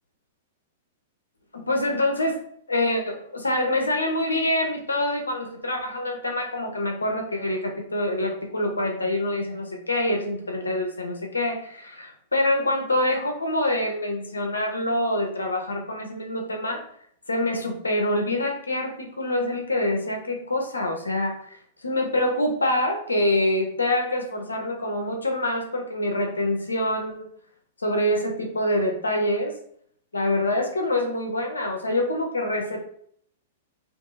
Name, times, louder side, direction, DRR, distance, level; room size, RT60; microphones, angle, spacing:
voice 1, 1.5-2.4 2.7-16.8 17.3-21.6 21.8-27.3 27.8-29.6 30.1-32.8, left 1 dB, 80° left, 2 dB, 0.6 m, -25 dB
2.7 x 2.5 x 2.5 m, 0.64 s
figure-of-eight pair, 105°, 0 cm